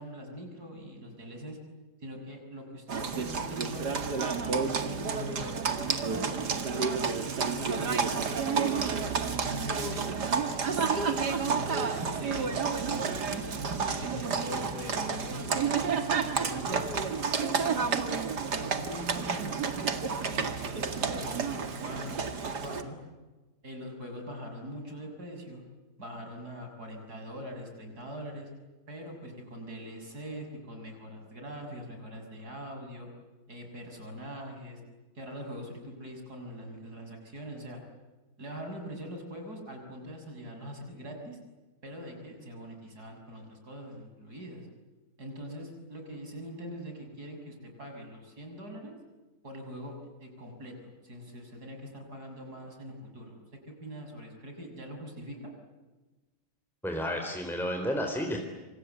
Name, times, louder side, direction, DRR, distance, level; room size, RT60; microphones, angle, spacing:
voice 1, 0.0-1.6 2.0-8.0 8.5-8.8 9.5-11.1 11.4-13.7 14.0-16.9 17.4-18.1 18.5-23.0 23.6-25.6 26.0-28.5 28.9-33.1 33.5-34.8 35.2-37.8 38.4-41.4 41.8-44.7 45.2-48.9 49.4-55.5, equal, 70° right, 4 dB, 7.2 m, -42 dB
Livestock farm animals working animals, 2.9-22.8, right 5 dB, 90° right, 2.7 m, -30 dB
voice 2, 56.8-58.4, equal, ahead, 3 dB, 3.7 m, -31 dB
27.0 x 27.0 x 8.1 m, 1.2 s
omnidirectional pair, 1.7 m